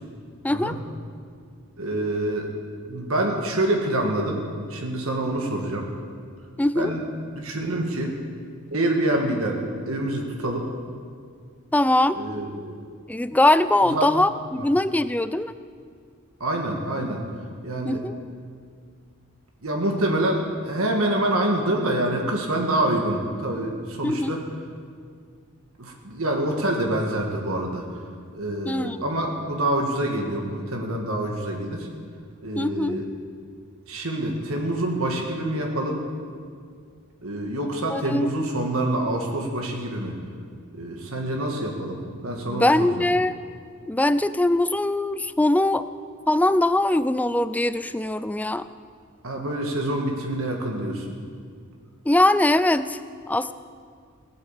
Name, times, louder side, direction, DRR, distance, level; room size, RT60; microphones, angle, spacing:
voice 1, 1.8-2.5 2.9-5.9 6.8-7.1 7.4-8.2 8.7-9.6 9.9-10.7 12.1-12.8 13.8-14.1 14.5-14.6 16.4-17.2 17.6-18.0 19.6-24.4 25.8-27.9 28.3-31.9 32.4-33.1 33.9-36.0 37.2-40.2 40.7-43.1 49.2-51.2, right 1 dB, 70° right, 1 dB, 1.8 m, -26 dB
voice 2, 6.6-6.9 11.7-12.2 13.1-15.5 17.9-18.1 24.0-24.3 28.6-29.0 32.6-33.0 37.9-38.5 42.5-43.3 43.9-45.9 46.3-48.7 52.1-53.0 53.3-53.5, left 1 dB, 5° left, 14 dB, 0.4 m, -21 dB
18.0 x 9.0 x 7.3 m, 2.1 s
head